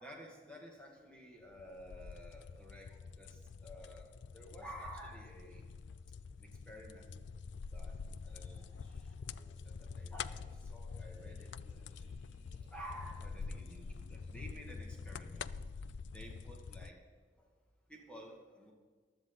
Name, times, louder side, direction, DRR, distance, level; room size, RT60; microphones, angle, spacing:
voice 1, 0.0-5.7 6.4-7.1 7.7-12.2 12.7-15.5 16.1-17.0 17.4-17.5 17.9-18.7, equal, 5° left, -1 dB, 2.2 m, -52 dB
sound 1, 1.5-16.9, left 5 dB, 75° left, 0.4 m, -46 dB
sound 2, 8.2-14.8, equal, 35° left, 3.3 m, -71 dB
15.5 x 12.0 x 4.0 m, 1.5 s
head